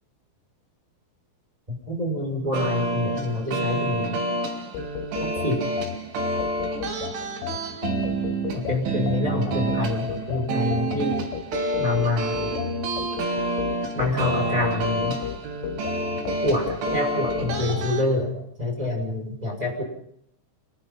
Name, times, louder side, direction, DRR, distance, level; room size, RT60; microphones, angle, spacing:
voice 1, 1.7-4.2 5.2-5.6 8.5-11.2 11.8-12.5 13.9-15.2 16.4-19.8, left 2 dB, 10° right, 1 dB, 5.9 m, -26 dB
sound 1, 2.5-18.0, right 2 dB, 80° right, 5.2 m, -28 dB
sound 2, 4.7-17.9, left 10 dB, 90° left, 3.6 m, -34 dB
26.5 x 20.0 x 5.7 m, 0.71 s
omnidirectional pair, 5.5 m